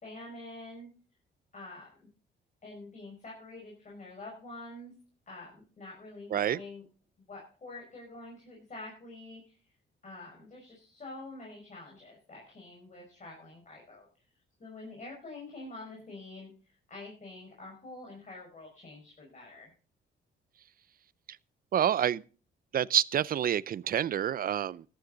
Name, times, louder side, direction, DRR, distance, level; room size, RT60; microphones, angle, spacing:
voice 1, 0.0-0.9 1.5-2.1 2.6-4.9 5.3-6.8 7.3-9.6 10.0-14.1 14.6-16.5 16.9-19.7, left 2 dB, 35° left, 5.7 m, -46 dB
voice 2, 21.7-22.2 22.7-24.8, right 10 dB, 45° right, 0.5 m, -28 dB
14.5 x 11.5 x 3.9 m
cardioid pair, 90°, 20 cm